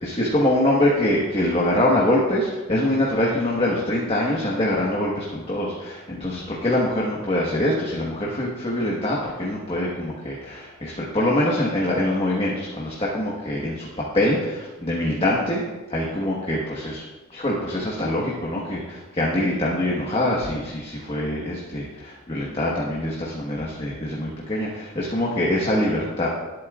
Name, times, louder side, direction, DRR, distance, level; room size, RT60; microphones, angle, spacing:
voice 1, 0.0-13.9 14.1-17.0 17.3-26.3, left 1 dB, 25° left, -4 dB, 1.4 m, -24 dB
19.0 x 8.5 x 2.5 m, 1.2 s
head